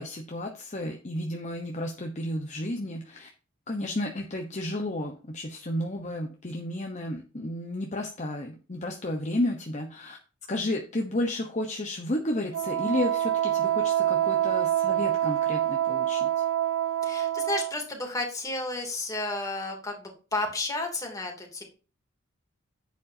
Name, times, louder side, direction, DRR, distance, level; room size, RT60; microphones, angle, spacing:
voice 1, 0.0-3.3 3.7-10.2 10.5-16.4, left 1 dB, 35° left, 2 dB, 1.0 m, -32 dB
Wind instrument woodwind instrument, 12.5-17.8, right 12 dB, 70° right, 0.4 m, -26 dB
voice 2, 17.0-21.6, left 2 dB, 15° left, 1 dB, 2.9 m, -32 dB
10.5 x 8.5 x 2.8 m, 0.35 s
head